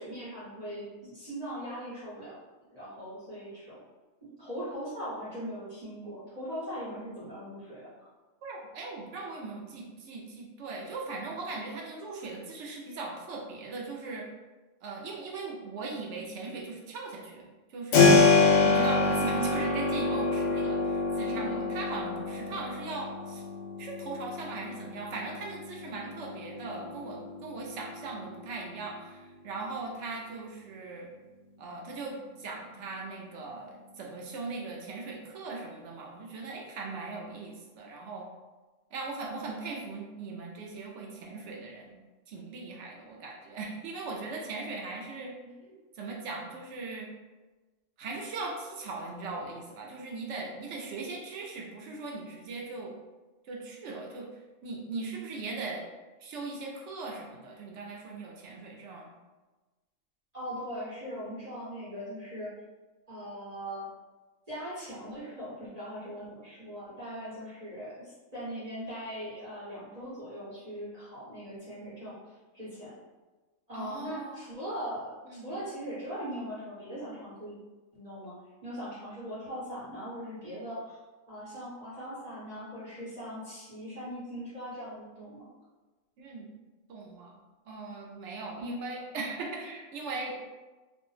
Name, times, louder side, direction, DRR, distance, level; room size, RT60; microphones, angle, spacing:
voice 1, 0.0-2.4 2.7-3.8 4.2-8.1 21.2-21.7 45.4-45.7 60.3-62.5 63.1-63.9 64.5-72.9 73.7-77.6 77.9-78.3 78.6-81.0 81.3-85.5 88.6-88.8, equal, 30° right, -12 dB, 1.0 m, -40 dB
voice 2, 8.4-14.3 14.8-18.3 18.6-23.4 23.8-31.1 31.6-38.3 38.9-42.0 42.3-45.3 45.9-47.1 48.0-52.9 53.4-54.3 54.6-55.8 56.2-59.1 73.7-74.4 75.3-75.5 86.2-86.5 86.9-87.4 87.7-90.4, right 3 dB, 70° right, -1 dB, 0.8 m, -39 dB
Keyboard (musical), 17.9-28.6, left 3 dB, 70° left, 0.9 m, -27 dB
2.6 x 2.1 x 3.0 m, 1.2 s
omnidirectional pair, 1.4 m